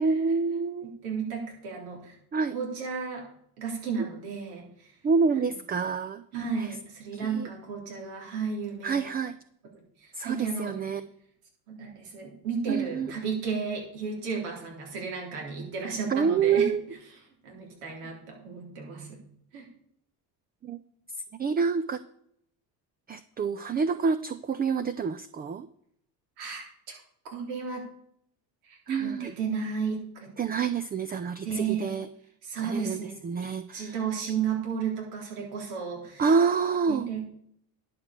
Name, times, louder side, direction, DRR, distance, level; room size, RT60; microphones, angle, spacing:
voice 1, 0.0-0.9 2.3-2.5 5.0-6.2 6.6-6.8 7.1-7.5 8.8-9.4 10.1-11.1 12.7-13.1 16.1-16.8 20.6-20.8 21.3-22.0 23.1-25.7 28.9-29.3 30.4-32.1 32.6-34.0 36.2-37.1, right 5 dB, 20° right, 13 dB, 0.4 m, -27 dB
voice 2, 1.0-2.2 2.5-3.2 3.6-4.9 6.3-9.1 10.0-10.7 11.7-16.7 17.4-19.2 19.5-19.7 26.4-27.0 27.3-27.9 28.6-30.3 31.4-31.9 32.4-33.2 33.7-36.2 36.9-37.3, right 6 dB, 75° right, 0 dB, 3.5 m, -33 dB
11.0 x 6.1 x 6.5 m, 0.70 s
hypercardioid pair, 75°, 49 cm